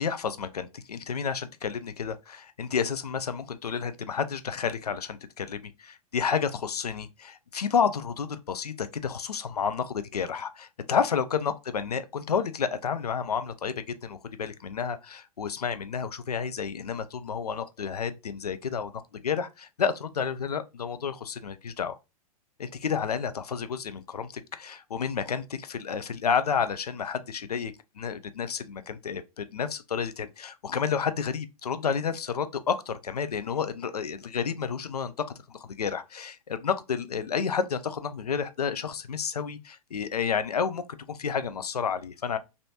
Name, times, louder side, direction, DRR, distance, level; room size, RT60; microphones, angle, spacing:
voice 1, 0.0-22.0 22.6-42.4, left 6 dB, 80° left, 0.4 m, -30 dB
3.3 x 2.6 x 2.6 m
figure-of-eight pair, 105°, 19 cm